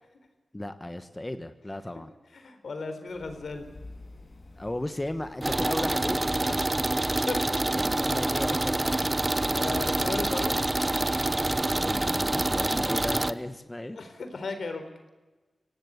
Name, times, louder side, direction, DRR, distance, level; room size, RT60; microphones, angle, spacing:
voice 1, 0.5-2.1 4.6-6.2 7.7-9.2 9.5-9.8 11.6-14.0, left 1 dB, 15° left, 9 dB, 1.2 m, -35 dB
voice 2, 2.3-3.7 6.5-6.6 7.3-7.7 8.4-8.5 9.5-10.7 13.9-14.8, left 3 dB, 75° left, 8 dB, 4.0 m, -36 dB
sound 1, 3.1-12.9, left 2 dB, 45° left, 3.8 m, -48 dB
sound 2, 5.4-13.3, right 2 dB, 25° right, 0.8 m, -26 dB
24.5 x 18.0 x 8.2 m, 1.2 s
wide cardioid pair, 95°, 0 cm